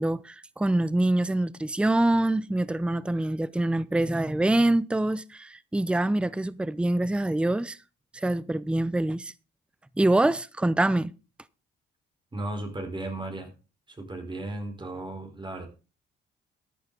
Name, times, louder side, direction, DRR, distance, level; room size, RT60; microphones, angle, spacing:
voice 1, 0.0-7.8 8.1-9.3 10.0-11.1, right 1 dB, 5° right, 0.6 m, -25 dB
voice 2, 12.3-13.5 13.9-15.7, right 2 dB, 25° right, 4.2 m, -35 dB
14.0 x 10.5 x 3.9 m
cardioid pair, 90°, 20 cm